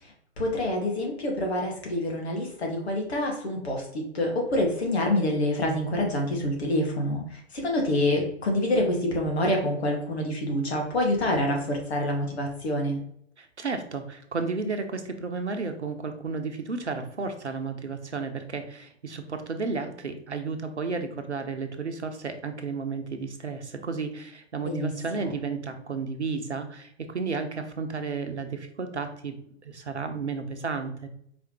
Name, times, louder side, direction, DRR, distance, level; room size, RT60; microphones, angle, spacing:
voice 1, 0.0-13.0 24.6-25.3, left 1 dB, 70° left, 1 dB, 1.9 m, -27 dB
voice 2, 13.4-29.3 29.6-31.1, right 4 dB, 85° right, 7 dB, 0.8 m, -33 dB
4.9 x 3.4 x 3.1 m, 0.68 s
figure-of-eight pair, 110°, 33 cm